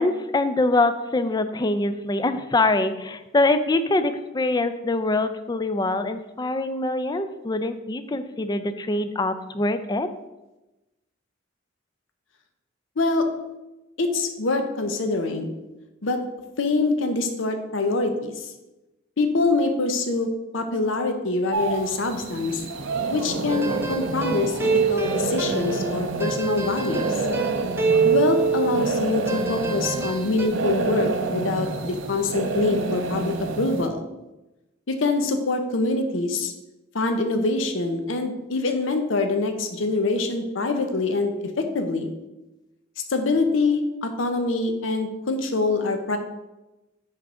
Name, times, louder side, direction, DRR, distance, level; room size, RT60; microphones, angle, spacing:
voice 1, 0.0-10.1, left 2 dB, 20° left, 10 dB, 0.4 m, -24 dB
voice 2, 14.0-15.5 16.0-16.2 16.6-18.5 19.2-22.6 23.1-27.1 28.0-34.1 34.9-36.5 36.9-42.1 43.1-46.2, left 3 dB, 80° left, 6 dB, 0.8 m, -25 dB
sound 1, 21.5-33.9, right 3 dB, 70° right, 0.6 m, -28 dB
sound 2, 23.5-29.0 29.3-30.5, right 5 dB, 15° right, 0.7 m, -25 dB
9.8 x 3.5 x 3.7 m, 1.0 s
head